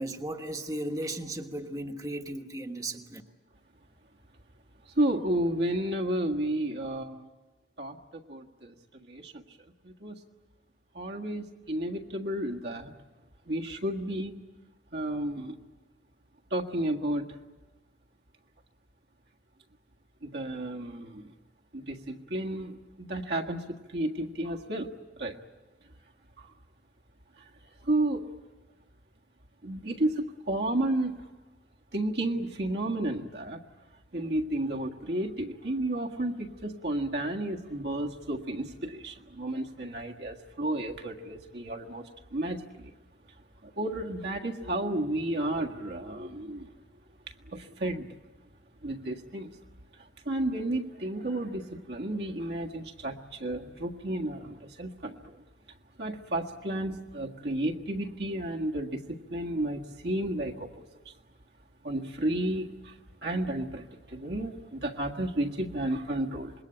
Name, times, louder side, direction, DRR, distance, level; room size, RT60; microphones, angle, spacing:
voice 1, 0.0-3.2, right 1 dB, 20° right, 1.3 m, -35 dB
voice 2, 5.0-7.3 7.8-8.7 9.1-9.4 9.8-10.1 10.9-12.9 13.5-14.4 14.9-15.6 16.5-17.3 20.2-21.3 21.7-23.6 23.9-24.9 25.2-25.4 26.4-26.5 27.8-28.3 29.6-31.1 31.9-33.6 34.1-42.0 42.3-42.9 43.6-46.7 47.5-48.0 48.8-49.5 50.2-55.4 56.0-60.7 61.8-62.9 63.2-66.5, right 1 dB, 60° right, 1.7 m, -32 dB
26.5 x 21.5 x 8.9 m
head